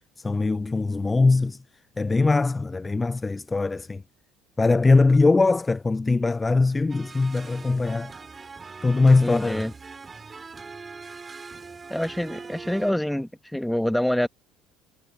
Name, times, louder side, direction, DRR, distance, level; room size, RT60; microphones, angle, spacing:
voice 1, 0.2-1.6 2.0-4.0 4.6-8.1 8.8-9.7, left 3 dB, 20° left, 0.3 m, -21 dB
sound 1, 6.9-12.9, right 4 dB, 25° right, 4.4 m, -42 dB
voice 2, 9.2-9.7 11.9-14.3, left 1 dB, 5° left, 1.4 m, -26 dB
hypercardioid pair, 60°, 0 cm